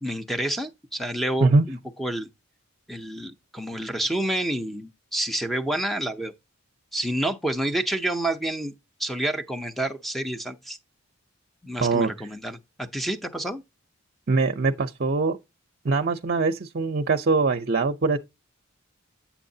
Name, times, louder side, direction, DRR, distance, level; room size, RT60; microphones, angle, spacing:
voice 1, 0.0-2.3 2.9-6.3 6.9-8.7 9.0-10.8 11.6-13.6, right 1 dB, ahead, 0.6 m, -29 dB
voice 2, 11.8-12.1 14.3-15.4 15.8-18.2, right 3 dB, 45° right, 0.6 m, -22 dB
9.4 x 7.0 x 2.7 m
head